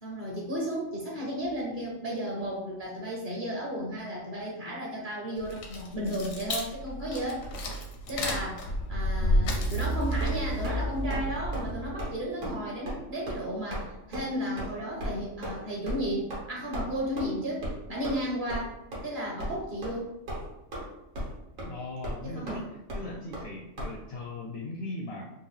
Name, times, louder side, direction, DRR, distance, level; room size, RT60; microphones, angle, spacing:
voice 1, 0.0-7.4 8.1-18.7 19.0-20.1 22.2-22.7 23.0-23.2, equal, 45° right, -3 dB, 0.9 m, -34 dB
sound 1, 5.4-11.9, equal, 85° left, 1.1 m, -30 dB
sound 2, 10.2-10.8 11.1-11.3 11.5-11.7 12.0-12.1 12.4-12.6 12.9-13.0 13.3-13.4 13.7-13.9 14.1-14.2 14.6-14.7 15.0-15.1 15.4-15.6 15.9-16.0 16.3-16.4 16.7-16.8 17.2-17.3 17.6-17.8 18.0-18.2 18.5-18.6 18.9-19.0 19.4-19.5 19.8-20.0 20.3-20.8 21.1-21.3 21.6-21.7 22.0-22.2 22.5-22.6 22.9-23.0 23.3-23.5 23.8-23.9, equal, 80° right, 1.4 m, -35 dB
voice 2, 21.6-25.3, left 2 dB, 65° left, -1 dB, 0.7 m, -39 dB
3.7 x 2.5 x 3.2 m, 0.89 s
omnidirectional pair, 1.4 m